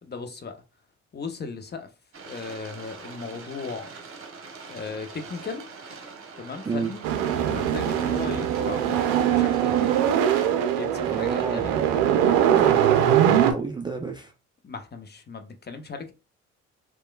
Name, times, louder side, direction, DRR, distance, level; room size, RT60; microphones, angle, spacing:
voice 1, 0.0-0.6 1.1-1.9 2.2-3.9 4.7-5.7 6.4-7.0 7.4-10.0 10.8-11.8 14.6-16.1, left 4 dB, 30° left, 0.6 m, -36 dB
sound 1, 2.1-10.5, right 4 dB, 35° right, 0.9 m, -43 dB
sound 2, 7.0-13.5, right 10 dB, 75° right, 0.5 m, -22 dB
voice 2, 11.0-11.8 12.5-14.3, right 4 dB, 15° right, 0.3 m, -30 dB
3.0 x 2.2 x 2.3 m
hypercardioid pair, 55°, 36 cm